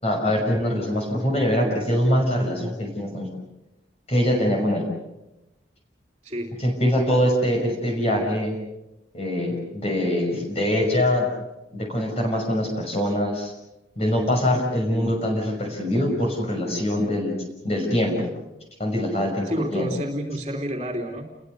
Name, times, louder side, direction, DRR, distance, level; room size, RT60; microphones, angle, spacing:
voice 1, 0.0-3.3 4.1-4.8 6.6-8.6 9.1-11.3 11.7-13.5 14.0-17.3 17.6-18.3 18.8-19.9, equal, 35° left, 1 dB, 6.0 m, -23 dB
voice 2, 6.2-6.6 19.4-21.2, equal, 30° right, 0 dB, 3.0 m, -29 dB
30.0 x 22.0 x 6.7 m, 0.95 s
head